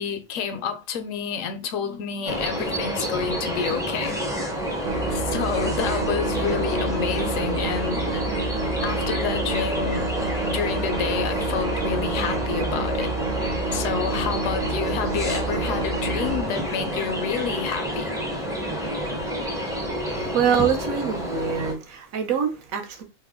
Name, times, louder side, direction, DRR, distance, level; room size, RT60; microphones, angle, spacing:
voice 1, 0.0-4.2 5.1-8.2 8.8-10.1 10.5-13.1 13.7-18.1, left 7 dB, 75° left, 0.9 m, -29 dB
sound 1, 2.3-21.7, equal, 5° right, 0.4 m, -29 dB
sound 2, 4.8-16.4, right 4 dB, 60° right, 0.6 m, -29 dB
voice 2, 20.1-23.0, right 7 dB, 80° right, 1.1 m, -25 dB
3.2 x 2.1 x 3.5 m
omnidirectional pair, 1.4 m